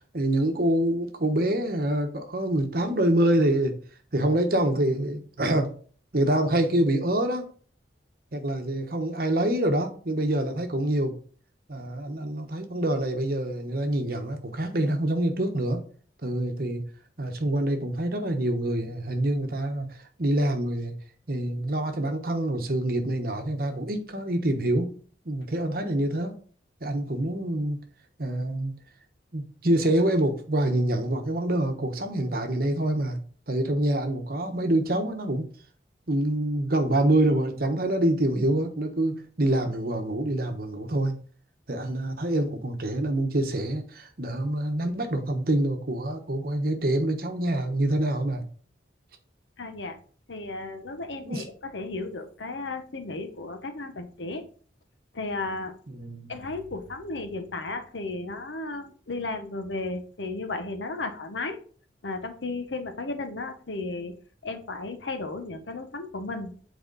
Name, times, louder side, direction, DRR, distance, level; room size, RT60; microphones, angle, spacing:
voice 1, 0.1-3.7 4.1-5.8 6.1-7.5 8.3-11.2 11.7-15.8 16.2-16.8 17.2-20.9 21.3-24.9 25.2-26.3 26.8-27.8 28.2-28.8 29.3-33.2 33.5-35.5 36.1-41.2 41.7-48.4 51.2-51.4 55.9-56.3, right 1 dB, 55° right, 1.1 m, -26 dB
voice 2, 49.6-50.0 50.3-51.4 51.7-54.4 55.1-55.7 56.3-61.6 62.0-64.1 64.4-66.5, left 3 dB, 85° left, 1.1 m, -34 dB
7.9 x 4.2 x 4.1 m
head